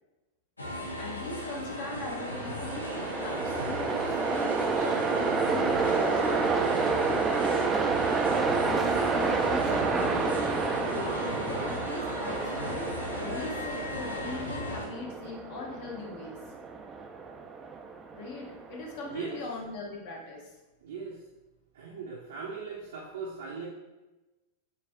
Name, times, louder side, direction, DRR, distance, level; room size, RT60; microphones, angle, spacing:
sound 1, 0.6-14.9, left 1 dB, 80° left, 0.7 m, -37 dB
voice 1, 1.0-6.7 8.5-10.4 10.7-12.9 13.2-16.4 18.1-20.5, left 3 dB, 50° left, -1 dB, 1.0 m, -40 dB
Train, 2.0-19.2, right 4 dB, 20° right, 0.4 m, -29 dB
voice 2, 19.1-19.4 20.8-21.2 21.7-23.7, right 5 dB, 60° right, -4 dB, 0.6 m, -39 dB
6.6 x 2.7 x 2.2 m, 1.1 s
figure-of-eight pair, 90°, 0 cm